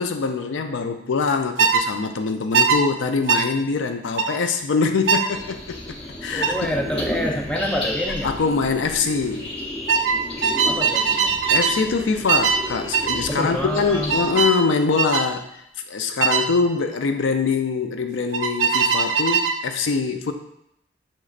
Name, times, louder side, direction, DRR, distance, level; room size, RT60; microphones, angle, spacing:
voice 1, 0.0-5.8 6.2-6.5 8.2-9.5 11.5-15.4 15.9-20.3, left 4 dB, 75° left, 6 dB, 0.4 m, -23 dB
sound 1, 1.6-1.8 2.5-2.8 3.3-3.5 4.2-4.4 5.1-5.3 6.4-6.6 8.1-8.3 8.6-9.0 9.9-11.8 12.3-12.6 12.9-13.2 14.1-14.6 15.0-15.3 16.2-16.5 18.3-19.6, right 6 dB, 75° right, 0.4 m, -20 dB
sound 2, 5.3-14.4, left 1 dB, 30° left, 0.8 m, -33 dB
voice 2, 6.3-8.3 10.6-11.4 13.3-14.1, equal, 5° left, 1 dB, 0.4 m, -27 dB
6.3 x 3.0 x 2.4 m, 0.77 s
head